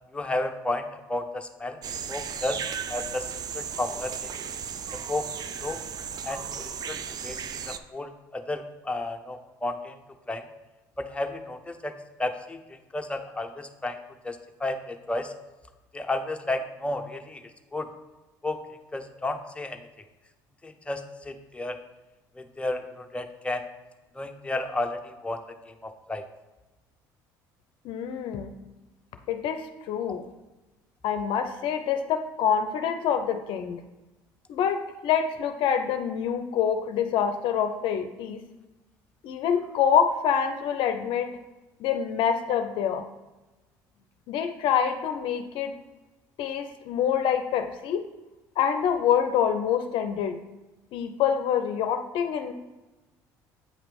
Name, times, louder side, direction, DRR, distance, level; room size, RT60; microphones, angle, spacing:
voice 1, 0.1-1.8 2.1-2.6 2.9-3.3 3.5-4.3 5.1-5.3 5.6-5.8 6.2-7.0 7.2-7.4 7.7-9.9 10.3-10.4 11.0-11.9 12.2-12.6 12.9-14.0 14.2-15.3 15.9-17.4 17.7-17.9 18.4-18.6 18.9-19.8 20.6-21.8 22.4-23.6 24.2-25.0 25.2-25.4 25.8-26.2, left 2 dB, 10° left, 5 dB, 0.8 m, -32 dB
sound 1, 1.8-7.8, right 7 dB, 45° right, 0.5 m, -35 dB
voice 2, 27.8-28.5 29.3-30.3 31.0-33.8 34.5-38.4 39.2-41.4 41.8-43.1 44.3-45.7 46.4-48.0 48.6-50.4 50.9-52.5, left 8 dB, 65° left, 8 dB, 0.5 m, -26 dB
8.4 x 3.0 x 5.1 m, 1.1 s
hypercardioid pair, 70°, 9 cm